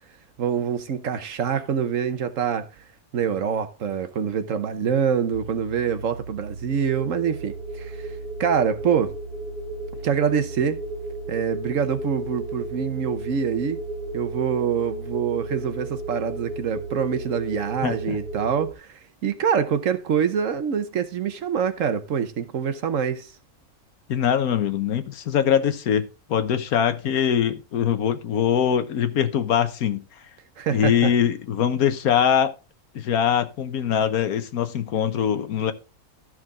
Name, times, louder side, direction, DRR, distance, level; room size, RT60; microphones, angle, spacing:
voice 1, 0.4-2.7 3.1-8.1 8.4-9.1 10.0-10.8 11.3-13.8 14.1-23.3 30.6-31.1, right 7 dB, 60° right, 1.2 m, -25 dB
sound 1, 5.3-18.7, right 4 dB, 85° right, 1.5 m, -39 dB
sound 2, 6.7-18.7, right 1 dB, 35° left, 5.3 m, -35 dB
voice 2, 17.8-18.2 24.1-30.0 30.7-32.5 32.9-35.7, left 8 dB, 75° left, 1.4 m, -22 dB
13.0 x 6.2 x 3.6 m
omnidirectional pair, 1.6 m